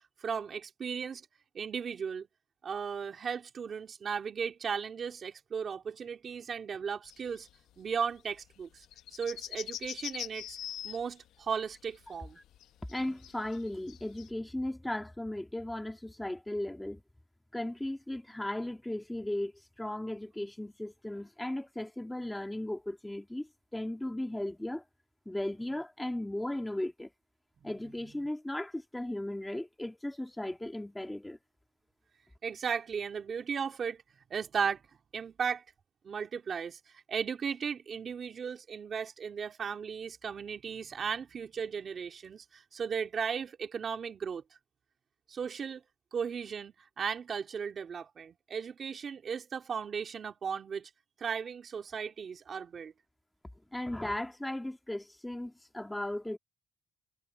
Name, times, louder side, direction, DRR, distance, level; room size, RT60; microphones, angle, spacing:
voice 1, 0.2-1.3 1.5-2.3 2.6-7.5 7.8-8.9 9.1-10.6 10.8-12.4 32.4-34.0 34.3-34.8 35.1-35.6 36.0-36.8 37.1-44.4 45.3-45.8 46.1-50.9 51.2-52.9, right 6 dB, 35° right, 2.4 m, -36 dB
sound 1, 7.1-7.6 7.9-8.2 8.5-14.3, left 11 dB, 70° left, 1.0 m, -43 dB
voice 2, 12.9-17.0 17.5-19.5 19.8-24.8 25.3-27.1 27.6-31.4 53.7-56.4, left 1 dB, 5° left, 1.8 m, -36 dB
cardioid pair, 145°, 0 cm